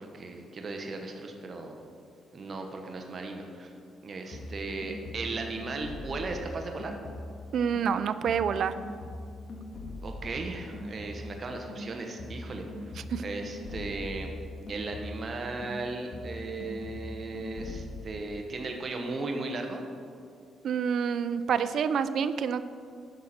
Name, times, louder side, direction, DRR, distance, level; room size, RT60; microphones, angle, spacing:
voice 1, 0.0-1.8 2.3-3.7 4.0-6.9 10.0-12.7 13.2-14.3 14.7-19.8, right 3 dB, 45° right, 3 dB, 1.0 m, -36 dB
sound 1, 4.3-7.5 7.7-11.4 11.7-15.4 15.6-18.0, left 1 dB, 45° left, 1.6 m, -41 dB
voice 2, 7.5-8.8 13.1-13.2 20.6-22.6, right 7 dB, 65° right, 13 dB, 0.4 m, -27 dB
10.0 x 6.4 x 4.2 m, 2.3 s
cardioid pair, 90°, 0 cm